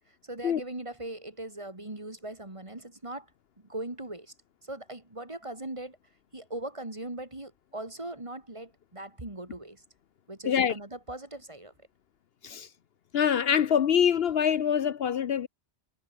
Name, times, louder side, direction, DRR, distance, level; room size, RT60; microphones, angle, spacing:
voice 1, 0.0-3.3 3.6-4.3 4.6-6.0 6.3-9.8 10.3-11.7, right 1 dB, 30° right, 2.6 m, -40 dB
voice 2, 13.1-15.5, left 8 dB, 65° left, 0.9 m, -24 dB
omnidirectional pair, 1.1 m